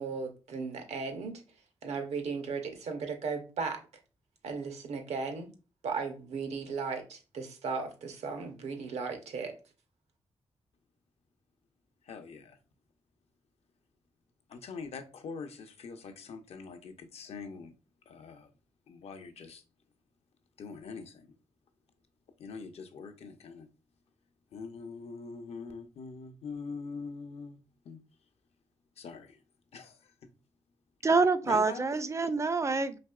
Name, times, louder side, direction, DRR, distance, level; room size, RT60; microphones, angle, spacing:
voice 1, 0.0-1.4 1.8-3.8 4.4-5.5 5.8-9.5, right 5 dB, 80° right, 0.7 m, -36 dB
voice 2, 12.0-12.6 14.5-17.7 18.1-18.5 18.9-19.6 20.6-21.3 22.4-23.7 24.5-28.0 29.0-29.4 29.7-30.1 31.4-32.0, left 5 dB, 70° left, 0.6 m, -43 dB
voice 3, 31.0-33.0, right 4 dB, 25° right, 0.4 m, -26 dB
4.0 x 2.9 x 2.3 m
cardioid pair, 55°, 11 cm